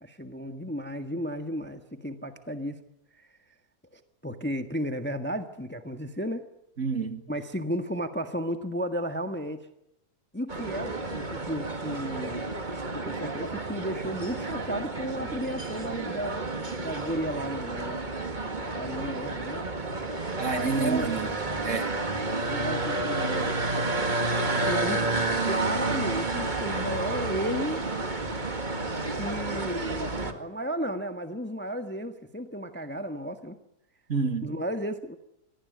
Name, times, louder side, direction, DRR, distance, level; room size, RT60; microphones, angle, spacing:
voice 1, 0.0-2.8 3.2-3.3 3.9-6.5 7.3-9.6 10.3-12.5 12.9-18.0 18.7-19.7 20.6-21.1 22.4-23.5 24.5-25.0 25.4-27.9 29.2-33.6 34.4-35.2, equal, 5° left, 1.4 m, -33 dB
voice 2, 6.8-7.2 20.4-21.3 21.6-21.9 34.1-34.5, right 4 dB, 45° right, 2.8 m, -28 dB
sound 1, 10.5-30.3, right 2 dB, 25° right, 2.1 m, -30 dB
25.0 x 19.0 x 9.4 m
omnidirectional pair, 1.8 m